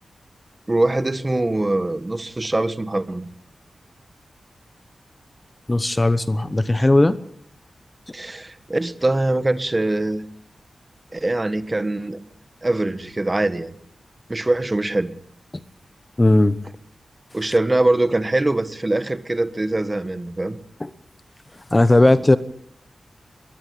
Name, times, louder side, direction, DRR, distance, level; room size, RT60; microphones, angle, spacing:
voice 1, 0.7-3.3 8.1-10.2 11.1-12.2 12.6-13.7 14.3-15.1 17.3-20.6, right 2 dB, 20° right, 1.5 m, -22 dB
voice 2, 5.7-7.2 16.2-16.6 20.8-20.9 21.7-22.4, left 2 dB, 20° left, 1.0 m, -16 dB
22.5 x 19.0 x 8.8 m
wide cardioid pair, 130°, 0 cm